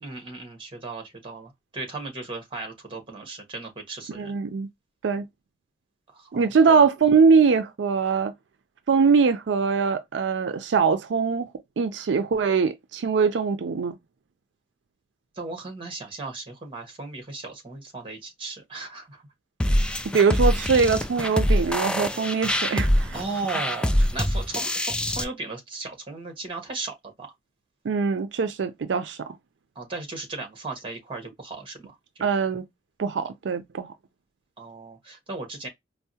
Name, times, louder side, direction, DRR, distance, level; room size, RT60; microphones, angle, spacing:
voice 1, 0.0-4.4 6.1-6.8 15.4-19.2 23.1-27.3 29.7-32.3 34.6-35.7, right 3 dB, 30° right, 1.3 m, -36 dB
voice 2, 4.1-4.7 5.0-5.2 6.3-8.3 8.9-11.5 11.8-14.0 20.1-23.2 27.8-29.2 32.2-32.6 33.0-33.9, right 5 dB, 80° right, 0.4 m, -22 dB
sound 1, 19.6-25.2, equal, 5° left, 0.3 m, -24 dB
4.5 x 2.0 x 2.7 m
head